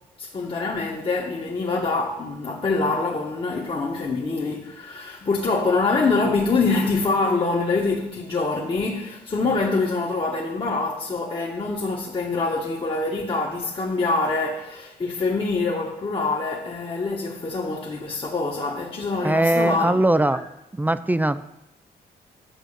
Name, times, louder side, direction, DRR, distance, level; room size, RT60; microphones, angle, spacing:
voice 1, 0.2-20.0 20.3-20.4, left 3 dB, 30° left, 1.1 m, -25 dB
voice 2, 19.2-20.4 20.7-21.4, right 1 dB, 10° right, 0.3 m, -20 dB
9.0 x 6.1 x 6.7 m
cardioid pair, 130°, 17 cm